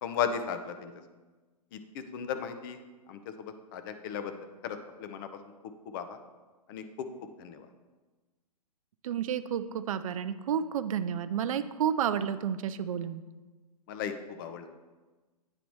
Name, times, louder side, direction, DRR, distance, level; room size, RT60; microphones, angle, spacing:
voice 1, 0.0-0.9 1.7-2.8 3.1-4.3 4.6-5.3 5.9-6.2 6.7-7.1 7.4-7.7 13.9-14.7, left 7 dB, 30° left, 8 dB, 0.5 m, -36 dB
voice 2, 9.0-13.2, right 8 dB, 55° right, 11 dB, 0.4 m, -31 dB
8.7 x 2.9 x 4.7 m, 1.3 s
figure-of-eight pair, 115°, 21 cm